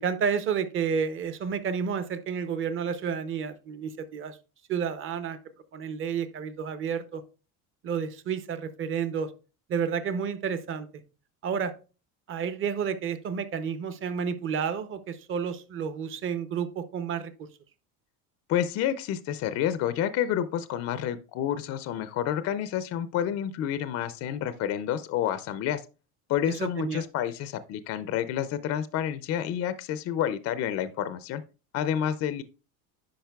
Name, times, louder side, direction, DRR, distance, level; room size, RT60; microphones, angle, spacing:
voice 1, 0.0-4.4 4.7-5.4 5.7-7.2 7.8-9.3 9.7-10.9 11.4-11.7 12.3-17.3 26.5-27.0, right 7 dB, 30° right, 12 dB, 0.6 m, -30 dB
voice 2, 18.5-25.9 26.3-31.4 31.7-32.4, left 10 dB, 40° left, 13 dB, 0.4 m, -29 dB
10.5 x 5.1 x 2.3 m, 0.33 s
cardioid pair, 150°, 41 cm